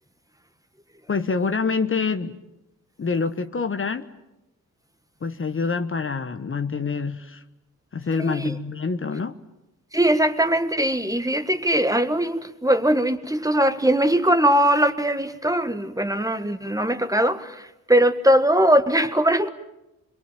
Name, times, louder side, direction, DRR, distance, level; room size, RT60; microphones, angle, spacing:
voice 1, 1.1-2.4 3.0-4.1 5.2-7.4 7.9-9.4, left 4 dB, 35° left, 9 dB, 1.2 m, -26 dB
voice 2, 8.2-8.6 9.9-19.5, right 1 dB, 10° right, 9 dB, 1.6 m, -21 dB
25.0 x 22.0 x 9.1 m, 0.91 s
cardioid pair, 80°, 34 cm